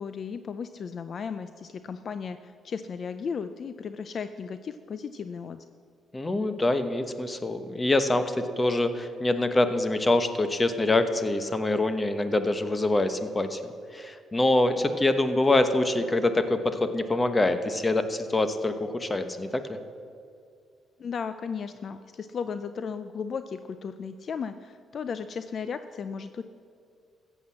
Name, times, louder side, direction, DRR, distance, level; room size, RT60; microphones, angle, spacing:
voice 1, 0.0-5.7 21.0-26.4, left 6 dB, 50° left, 11 dB, 0.5 m, -35 dB
voice 2, 6.1-19.8, left 2 dB, 20° left, 9 dB, 1.0 m, -25 dB
14.0 x 8.1 x 7.4 m, 2.3 s
cardioid pair, 90°, 0 cm